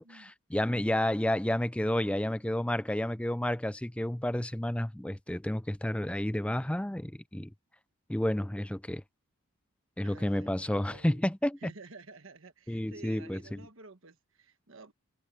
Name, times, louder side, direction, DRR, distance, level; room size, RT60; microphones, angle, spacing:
voice 1, 0.0-7.5 8.1-9.0 10.0-11.7 12.7-13.6, left 1 dB, 5° left, 0.4 m, -31 dB
voice 2, 10.0-11.2 11.6-14.9, right 3 dB, 65° right, 1.4 m, -51 dB
head